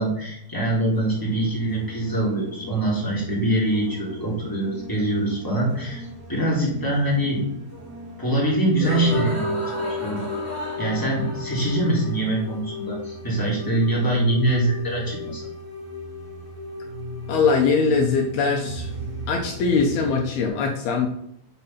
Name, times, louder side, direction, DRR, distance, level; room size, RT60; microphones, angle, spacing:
voice 1, 0.0-7.4 8.2-10.2 10.8-15.5, right 1 dB, 5° left, -5 dB, 2.3 m, -24 dB
sound 1, 0.9-20.5, left 1 dB, 25° right, 2.6 m, -35 dB
voice 2, 17.3-18.9 19.3-21.1, left 5 dB, 70° left, 2 dB, 2.4 m, -21 dB
9.2 x 5.7 x 5.8 m, 0.74 s
omnidirectional pair, 5.6 m